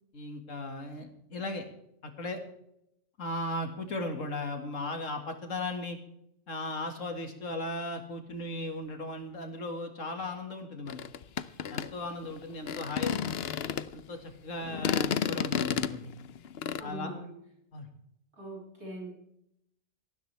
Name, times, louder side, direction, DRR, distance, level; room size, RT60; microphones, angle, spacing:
voice 1, 0.1-1.7 2.0-2.4 3.2-6.0 6.5-11.0 11.7-13.4 13.9-16.1 16.8-17.1 17.7-17.9, left 2 dB, 80° left, 5 dB, 2.4 m, -37 dB
sound 1, 10.9-14.0 14.6-16.8, left 8 dB, 60° left, 0.9 m, -31 dB
voice 2, 16.8-17.3 18.4-19.1, equal, 60° right, -4 dB, 7.9 m, -41 dB
19.0 x 14.5 x 3.4 m, 0.78 s
omnidirectional pair, 1.3 m